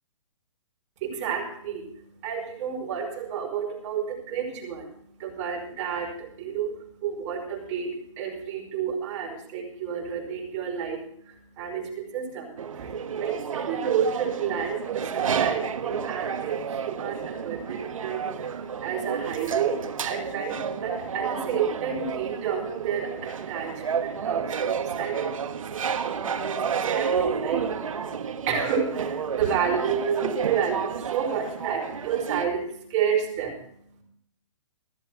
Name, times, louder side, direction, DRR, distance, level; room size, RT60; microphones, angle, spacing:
voice 1, 1.0-34.0, right 7 dB, 30° right, -1 dB, 5.0 m, -31 dB
sound 1, 12.6-32.5, right 6 dB, 90° right, 1.3 m, -31 dB
15.5 x 13.0 x 4.6 m, 0.65 s
hypercardioid pair, 165°, 17 cm